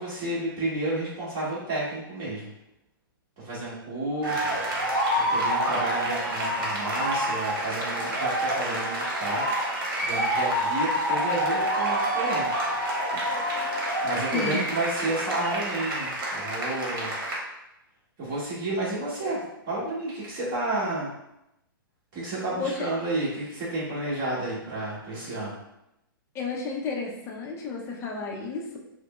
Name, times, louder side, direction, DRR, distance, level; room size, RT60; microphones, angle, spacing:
voice 1, 0.0-2.5 3.4-4.6 5.1-9.5 10.0-12.6 14.0-17.1 18.2-21.1 22.1-25.6, right 2 dB, 35° right, -7 dB, 1.5 m, -31 dB
sound 1, 4.2-17.4, right 1 dB, 60° right, 1.2 m, -27 dB
voice 2, 14.3-14.7 22.6-22.9 26.3-28.8, left 4 dB, 20° left, -2 dB, 0.6 m, -32 dB
4.7 x 2.1 x 2.3 m, 0.88 s
hypercardioid pair, 130°, 12 cm